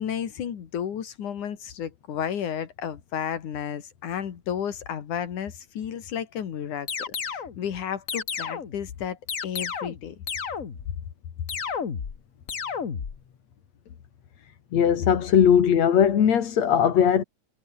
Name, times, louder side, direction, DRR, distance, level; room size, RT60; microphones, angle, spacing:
voice 1, 0.0-10.2, left 9 dB, 90° left, 3.7 m, -32 dB
sound 1, 6.9-7.6 8.1-8.8 9.3-10.0 10.3-10.9 11.5-12.2 12.5-13.2, left 6 dB, 40° left, 1.3 m, -32 dB
voice 2, 14.7-17.2, left 8 dB, 65° left, 3.3 m, -19 dB
omnidirectional pair, 3.4 m